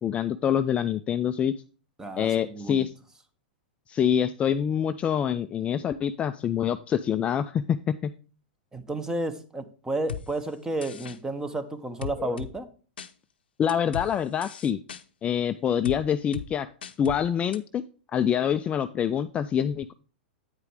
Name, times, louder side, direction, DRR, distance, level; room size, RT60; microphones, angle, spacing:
voice 1, 0.0-1.5 2.2-2.9 3.9-8.1 12.2-12.3 13.6-14.8 15.2-16.7 17.0-17.8 18.1-19.9, left 8 dB, 25° left, 10 dB, 0.3 m, -26 dB
voice 2, 2.0-2.9 8.7-12.7, right 2 dB, 10° right, 10 dB, 1.0 m, -32 dB
sound 1, 10.1-10.2 10.8-11.2 12.0-12.5 13.0-13.1 13.7-14.1 14.4-15.0 15.9-16.0 16.3-16.5 16.8-17.2 17.5-17.6, left 8 dB, 80° left, 0.6 m, -36 dB
9.0 x 4.9 x 4.8 m, 0.38 s
hypercardioid pair, 115°, 5 cm